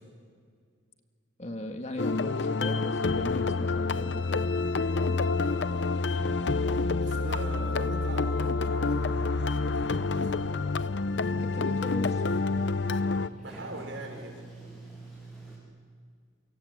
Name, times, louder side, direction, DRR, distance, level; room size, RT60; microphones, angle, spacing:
voice 1, 1.4-4.4 11.3-12.2, left 1 dB, 35° left, 5 dB, 1.9 m, -38 dB
sound 1, 2.0-13.3, left 3 dB, 65° left, 0.7 m, -28 dB
voice 2, 5.4-5.8 6.1-6.4 7.0-10.3 13.4-14.4, right 1 dB, 75° right, 2 dB, 5.9 m, -42 dB
Sliding door, 7.7-15.6, right 2 dB, ahead, 7.9 m, -49 dB
28.5 x 25.5 x 8.2 m, 2.1 s
head